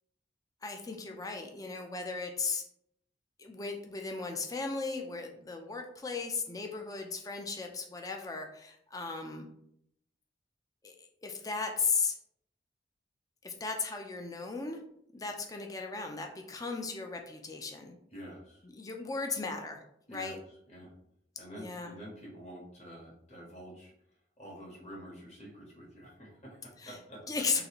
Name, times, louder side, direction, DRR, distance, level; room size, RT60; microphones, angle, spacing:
voice 1, 0.6-2.6 3.4-9.5 10.8-12.1 13.4-14.8 15.1-17.9 18.6-19.8 20.1-20.4 21.5-22.0 26.8-27.0 27.3-27.6, left 4 dB, 20° left, 3 dB, 0.5 m, -36 dB
voice 2, 18.1-18.6 20.1-20.9 21.4-23.9 24.4-27.2 27.5-27.6, equal, 40° left, -3 dB, 1.5 m, -48 dB
4.0 x 3.3 x 2.9 m, 0.73 s
head